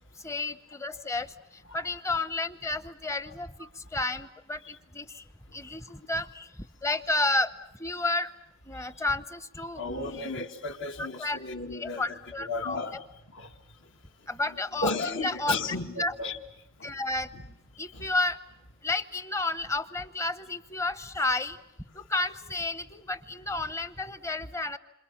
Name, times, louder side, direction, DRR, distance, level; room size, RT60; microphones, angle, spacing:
voice 1, 0.2-1.3 1.7-3.5 3.9-5.2 5.5-6.5 6.8-7.5 7.8-8.3 8.7-10.3 11.2-11.4 11.7-12.8 14.3-15.5 16.0-16.1 16.8-17.3 17.8-18.4 18.8-21.6 21.9-24.8, left 2 dB, 15° left, 13 dB, 0.9 m, -31 dB
voice 2, 9.7-13.6 14.4-16.4 16.8-16.9 17.3-17.5 17.9-18.1, left 3 dB, 65° left, 6 dB, 1.9 m, -35 dB
28.5 x 27.0 x 7.3 m, 0.86 s
head